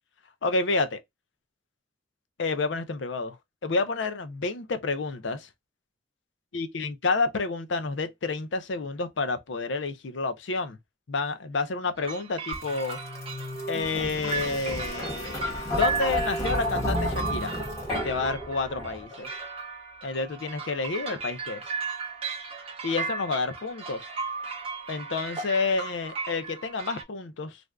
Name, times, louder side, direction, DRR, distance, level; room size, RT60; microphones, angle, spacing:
voice 1, 0.4-1.0 2.4-3.4 3.6-5.5 6.5-10.8 11.1-13.0 13.7-15.4 15.7-17.6 17.9-19.3 20.0-21.6 22.8-24.1 24.9-27.6, left 3 dB, 70° left, 0.6 m, -29 dB
sound 1, 12.0-27.0, right 4 dB, 30° right, 0.6 m, -36 dB
sound 2, 12.5-19.3, left 1 dB, 15° left, 1.0 m, -32 dB
2.5 x 2.3 x 3.3 m
head